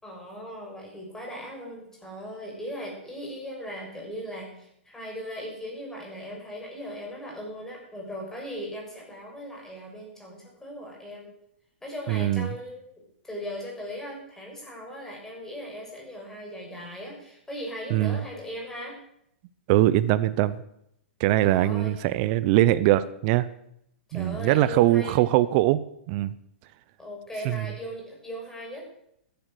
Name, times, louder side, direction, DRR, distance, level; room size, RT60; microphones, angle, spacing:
voice 1, 0.0-11.3 11.8-12.8 13.2-19.0 21.5-21.9 24.1-25.2 27.0-28.8, equal, 5° left, -1 dB, 6.3 m, -38 dB
voice 2, 12.1-12.5 17.9-18.2 19.7-20.6 21.2-23.5 24.1-25.8 26.1-26.3 27.4-27.6, right 15 dB, 45° right, 15 dB, 0.7 m, -22 dB
15.0 x 10.5 x 6.4 m, 0.75 s
hypercardioid pair, 120°, 7 cm